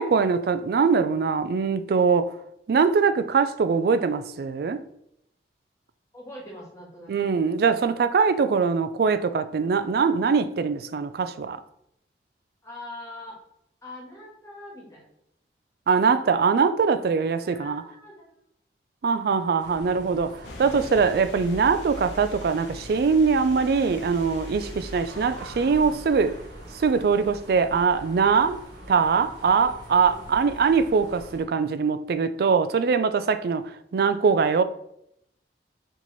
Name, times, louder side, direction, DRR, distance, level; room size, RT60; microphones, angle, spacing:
voice 1, 0.0-2.3 2.7-4.8 7.1-11.6 15.9-17.8 19.0-26.3 26.7-28.6 28.9-33.6 33.9-34.6, right 5 dB, 60° right, 0.3 m, -22 dB
voice 2, 6.1-7.3 9.6-9.7 12.6-13.4 13.8-15.1 17.4-18.3 19.1-19.9 24.6-24.8 29.4-29.7 30.1-30.2, left 1 dB, 15° left, 1.4 m, -43 dB
sound 1, 19.6-31.4, right 1 dB, 80° right, 1.5 m, -45 dB
sound 2, 20.4-30.6, left 1 dB, 90° left, 0.8 m, -43 dB
4.5 x 3.0 x 3.9 m
head